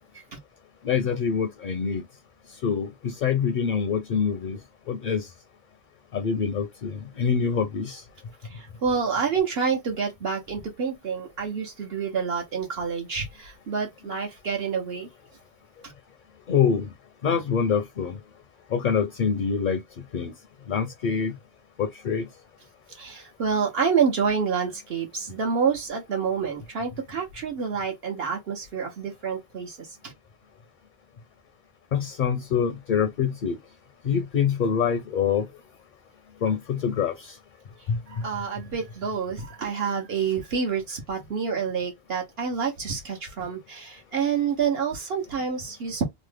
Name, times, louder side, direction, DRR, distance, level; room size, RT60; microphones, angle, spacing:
voice 1, 0.8-2.0 2.6-4.6 4.9-5.3 6.1-8.0 16.5-16.9 17.2-18.2 18.7-19.8 20.1-20.3 20.7-21.4 21.8-22.3 31.9-33.6 34.0-35.5 36.4-37.4 37.9-38.3, left 6 dB, 60° left, 0.6 m, -25 dB
voice 2, 8.4-15.1 22.9-30.1 38.1-46.1, right 6 dB, 70° right, 1.0 m, -28 dB
3.1 x 2.0 x 3.2 m
omnidirectional pair, 1.1 m